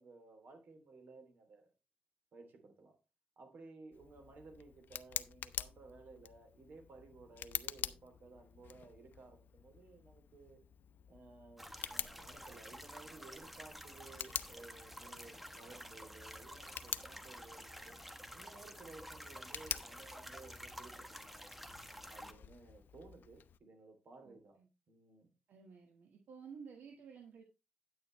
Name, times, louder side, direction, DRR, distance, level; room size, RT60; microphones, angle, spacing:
voice 1, 0.0-1.7 2.3-3.0 3.4-10.6 11.1-18.0 18.3-21.6 22.1-24.6 24.9-25.3 26.4-27.3, right 3 dB, 75° right, 3.0 m, -57 dB
Tick, 3.9-23.6, left 9 dB, 85° left, 0.6 m, -48 dB
sound 1, 11.6-22.3, equal, 5° right, 1.0 m, -51 dB
voice 2, 24.2-24.7 25.5-27.4, right 6 dB, 90° right, 1.6 m, -53 dB
9.5 x 9.4 x 3.2 m
cardioid pair, 90°, 3 cm